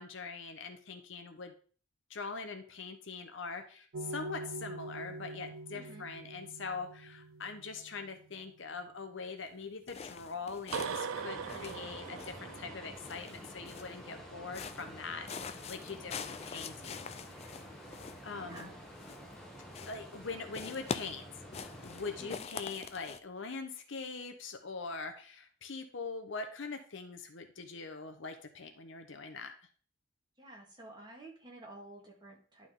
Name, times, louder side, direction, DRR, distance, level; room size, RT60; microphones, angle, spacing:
voice 1, 0.0-1.5 2.1-16.9 17.3-17.5 18.2-18.7 19.9-29.5, left 4 dB, 60° left, 7 dB, 0.8 m, -43 dB
sound 1, 3.9-8.2 10.7-13.1, right 4 dB, 70° right, 0.4 m, -42 dB
voice 2, 5.7-6.1 15.9-16.3 18.3-18.8 22.2-22.5 30.4-32.7, right 2 dB, 20° right, -2 dB, 1.8 m, -51 dB
sound 2, 9.9-11.2 11.4-12.6 13.0-14.0 14.5-15.0 15.3-19.4 19.7-20.2 20.5-23.2, left 5 dB, 30° left, 0.3 m, -44 dB
sound 3, 11.1-22.4, equal, 5° left, 1.2 m, -49 dB
11.0 x 3.8 x 3.8 m, 0.42 s
head